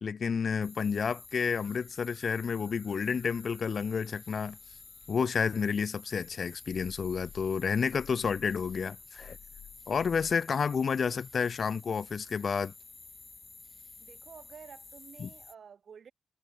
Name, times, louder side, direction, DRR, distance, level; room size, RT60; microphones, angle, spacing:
voice 1, 0.0-4.6 5.1-9.4 9.9-12.7 15.2-15.3, left 6 dB, 55° left, 0.3 m, -30 dB
sound 1, 0.6-15.6, left 4 dB, 40° left, 1.9 m, -51 dB
sound 2, 1.9-5.8 6.2-10.3, left 10 dB, 80° left, 3.1 m, -55 dB
voice 2, 14.0-16.1, right 7 dB, 65° right, 2.7 m, -51 dB
supercardioid pair, 55°, 0 cm